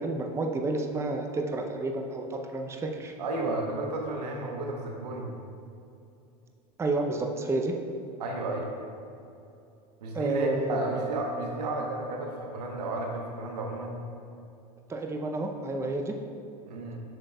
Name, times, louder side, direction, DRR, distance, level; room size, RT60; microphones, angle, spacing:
voice 1, 0.0-3.1 6.8-7.8 10.1-11.0 14.9-16.1, right 2 dB, 15° right, 3 dB, 0.5 m, -30 dB
voice 2, 3.2-5.3 8.2-8.7 10.0-14.0 16.7-17.0, right 2 dB, 85° right, 1 dB, 1.0 m, -32 dB
7.8 x 6.2 x 2.2 m, 2.7 s
hypercardioid pair, 100°, 20 cm